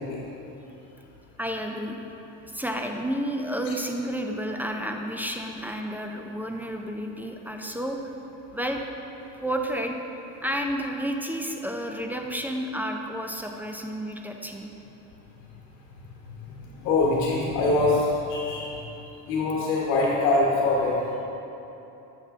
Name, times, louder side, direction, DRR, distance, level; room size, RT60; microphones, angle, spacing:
voice 1, 1.4-2.0 2.5-8.0 8.5-8.8 9.4-10.0 10.4-14.7, equal, 5° right, 2 dB, 0.4 m, -31 dB
voice 2, 16.4-18.8 19.3-21.0, left 2 dB, 75° left, -3 dB, 1.1 m, -24 dB
7.8 x 5.9 x 3.5 m, 3.0 s
hypercardioid pair, 75°, 46 cm